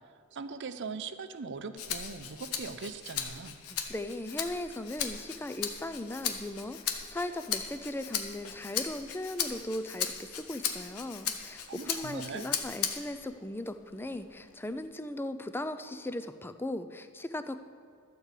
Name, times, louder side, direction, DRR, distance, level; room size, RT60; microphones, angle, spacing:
voice 1, 0.3-3.5 11.7-12.4, right 4 dB, 55° right, 11 dB, 0.6 m, -40 dB
Rattle (instrument), 1.8-13.2 13.7-14.9, left 8 dB, 85° left, 1.0 m, -37 dB
voice 2, 3.7-17.6, left 1 dB, 10° left, 10 dB, 0.4 m, -38 dB
12.5 x 4.6 x 8.1 m, 2.4 s
head